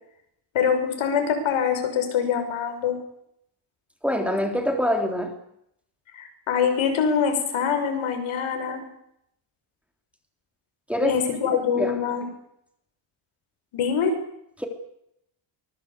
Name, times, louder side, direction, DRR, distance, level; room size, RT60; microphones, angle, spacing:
voice 1, 0.5-3.0 6.1-8.8 11.0-12.3 13.7-14.1, left 7 dB, 80° left, 6 dB, 6.2 m, -24 dB
voice 2, 4.0-5.3 10.9-11.2 11.8-12.0 14.6-14.7, equal, 5° right, 3 dB, 3.4 m, -24 dB
24.0 x 21.5 x 8.3 m, 0.75 s
cardioid pair, 170°, 48 cm